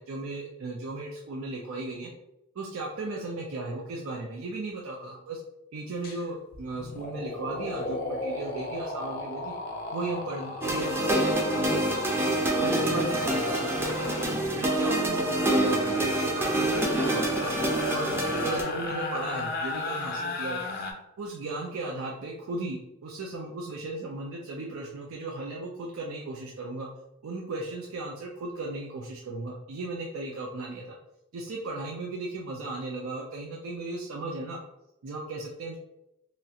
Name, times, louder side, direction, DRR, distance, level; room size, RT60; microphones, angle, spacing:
voice 1, 0.0-2.1 2.6-5.4 5.7-9.6 9.9-12.0 12.6-17.5 17.9-20.6 21.2-26.9 27.2-31.0 31.3-34.6 35.0-35.8, right 2 dB, 80° right, -1 dB, 0.4 m, -36 dB
sound 1, 6.0-6.2 6.5-20.9, left 2 dB, 45° left, 0.5 m, -36 dB
sound 2, 10.6-18.6, right 1 dB, 10° right, 0.4 m, -26 dB
3.0 x 2.4 x 2.7 m, 0.90 s
head